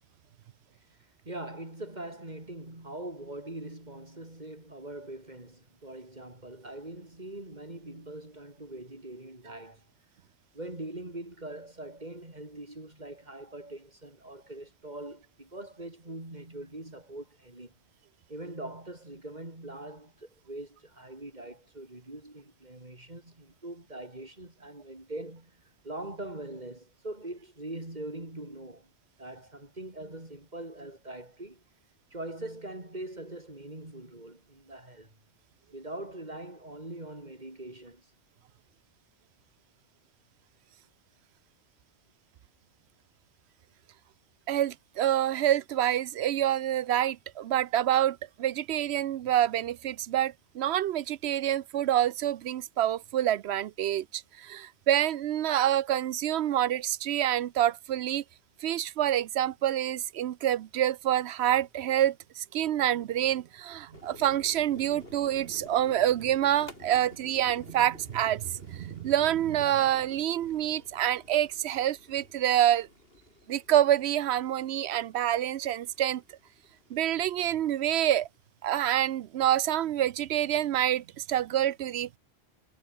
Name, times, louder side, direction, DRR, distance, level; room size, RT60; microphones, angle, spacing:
voice 1, 1.2-9.8 10.5-17.7 18.3-25.6 25.8-28.9 29.2-31.6 32.1-35.1 35.7-38.1, right 1 dB, 40° right, 4.8 m, -42 dB
voice 2, 44.5-58.2 58.6-72.9 73.5-76.2 76.9-78.3 78.6-82.2, right 11 dB, 75° right, 0.9 m, -27 dB
sound 1, 63.9-78.4, left 1 dB, 60° left, 5.6 m, -52 dB
omnidirectional pair, 1.1 m